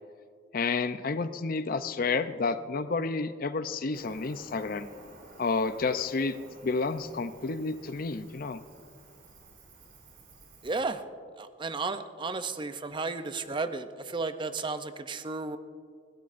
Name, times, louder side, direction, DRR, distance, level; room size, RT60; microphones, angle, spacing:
voice 1, 0.5-4.9 5.4-6.4 6.6-8.6, left 4 dB, 50° left, 11 dB, 0.5 m, -30 dB
Cricket, 3.9-10.8, right 2 dB, 55° right, 3.6 m, -53 dB
voice 2, 10.6-11.0 11.4-15.6, right 3 dB, 25° right, 10 dB, 0.5 m, -33 dB
21.0 x 17.0 x 2.5 m, 2.2 s
head